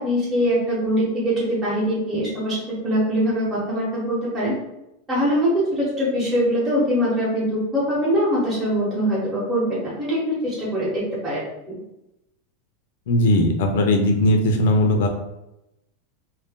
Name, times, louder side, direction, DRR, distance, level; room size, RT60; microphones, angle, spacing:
voice 1, 0.0-2.6 2.8-4.5 5.1-11.4, equal, 10° right, -10 dB, 1.0 m, -22 dB
voice 2, 13.1-15.1, left 1 dB, 70° left, 4 dB, 0.6 m, -18 dB
2.6 x 2.1 x 3.5 m, 0.89 s
supercardioid pair, 155°, 0 cm